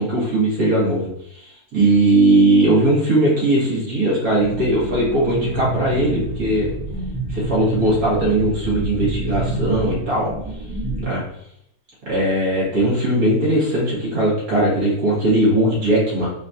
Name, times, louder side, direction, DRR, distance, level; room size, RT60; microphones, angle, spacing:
voice 1, 0.0-6.7 7.3-10.3 11.0-11.2 12.1-16.3, right 1 dB, 80° right, -6 dB, 1.9 m, -19 dB
sound 1, 4.4-11.1, right 2 dB, 30° right, 0.7 m, -27 dB
3.9 x 2.4 x 2.7 m, 0.74 s
omnidirectional pair, 1.5 m